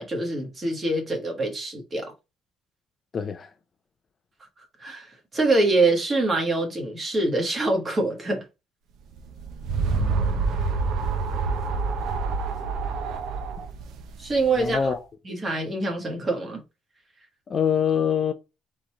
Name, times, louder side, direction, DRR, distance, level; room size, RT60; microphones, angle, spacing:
voice 1, 0.0-2.1 4.8-8.4 14.2-14.9 15.2-16.6, right 2 dB, 25° right, 1.3 m, -25 dB
voice 2, 3.1-3.5 9.9-10.5 14.6-15.0 17.5-18.3, left 7 dB, 30° left, 0.4 m, -25 dB
sound 1, 9.2-14.8, right 4 dB, 65° right, 0.7 m, -27 dB
3.8 x 3.1 x 4.3 m
cardioid pair, 160°, 0 cm